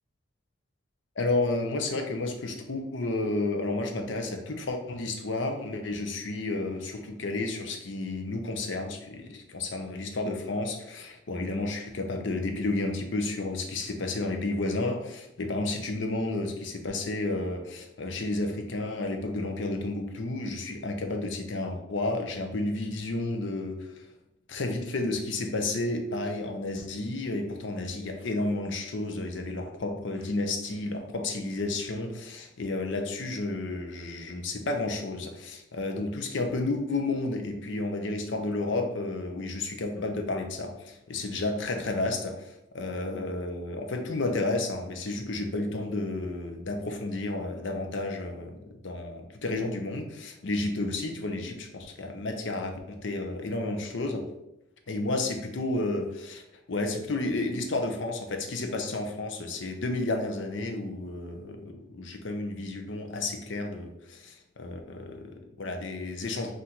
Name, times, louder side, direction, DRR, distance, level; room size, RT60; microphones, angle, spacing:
voice 1, 1.2-24.0 24.5-48.6 48.8-54.2 54.9-56.4 56.7-66.5, left 2 dB, 60° left, 4 dB, 0.6 m, -31 dB
3.8 x 2.6 x 4.3 m, 0.88 s
head